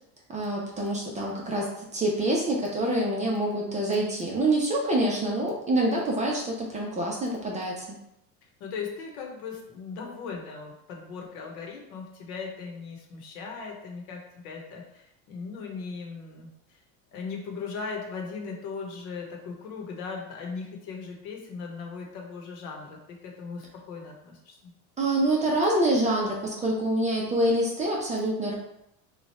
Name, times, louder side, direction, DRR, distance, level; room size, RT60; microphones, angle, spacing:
voice 1, 0.3-7.9 25.0-28.5, right 1 dB, 15° right, -3 dB, 0.6 m, -26 dB
voice 2, 8.6-16.8 17.1-24.7, left 5 dB, 70° left, 1 dB, 1.0 m, -38 dB
3.1 x 2.4 x 4.2 m, 0.82 s
supercardioid pair, 130°, 44 cm